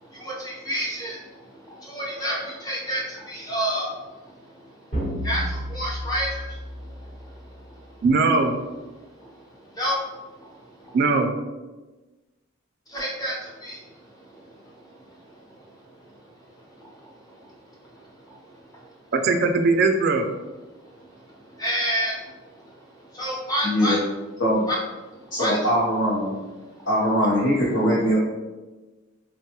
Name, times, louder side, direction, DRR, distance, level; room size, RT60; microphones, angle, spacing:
voice 1, 0.2-1.2 1.8-3.9 5.2-6.4 9.8-10.0 12.9-13.4 13.6-13.8 21.6-22.2 23.1-24.0 24.7-24.8 25.4-25.6, equal, 20° left, -4 dB, 0.7 m, -28 dB
sound 1, 4.9-7.5, equal, 35° left, 1.1 m, -31 dB
voice 2, 8.0-8.6 10.9-11.3 19.1-20.3, right 3 dB, 50° right, 6 dB, 0.3 m, -20 dB
voice 3, 23.6-24.0 24.4-24.6 25.3-26.4 26.9-28.2, equal, 60° left, -7 dB, 0.7 m, -21 dB
4.3 x 2.2 x 2.8 m, 1.2 s
head